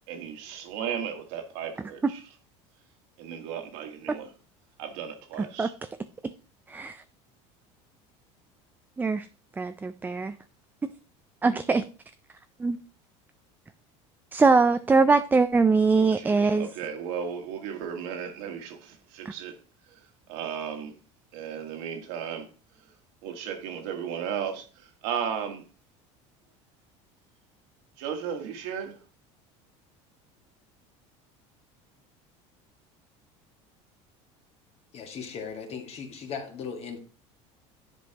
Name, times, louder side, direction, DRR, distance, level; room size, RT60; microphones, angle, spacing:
voice 1, 0.1-2.2 3.2-4.3 4.8-5.7 16.0-19.6 19.9-20.9 21.3-22.5 22.7-22.9 23.2-25.6 28.0-29.0, right 8 dB, 75° right, 1.5 m, -35 dB
voice 2, 6.7-7.0 9.0-9.3 9.6-10.3 11.4-11.9 12.6-12.8 14.3-16.7, right 4 dB, 10° right, 0.3 m, -22 dB
voice 3, 34.9-37.0, left 6 dB, 40° left, 1.7 m, -37 dB
10.0 x 5.3 x 2.8 m
supercardioid pair, 115°, 15 cm